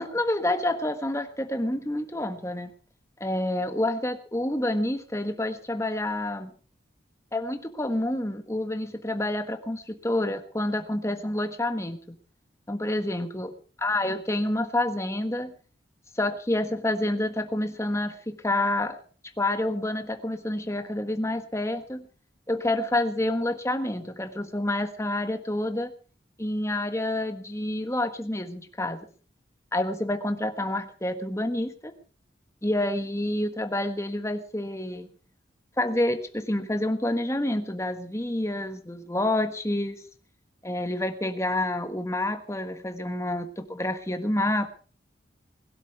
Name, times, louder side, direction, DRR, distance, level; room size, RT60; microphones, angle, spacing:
voice 1, 0.0-2.7 3.2-6.5 7.3-12.2 12.7-13.5 13.8-15.5 16.1-19.0 19.4-22.1 22.5-25.9 26.4-29.0 29.7-32.0 32.6-35.1 35.8-40.0 40.6-44.7, left 1 dB, 15° left, 8 dB, 1.4 m, -28 dB
21.0 x 12.5 x 4.8 m, 0.40 s
head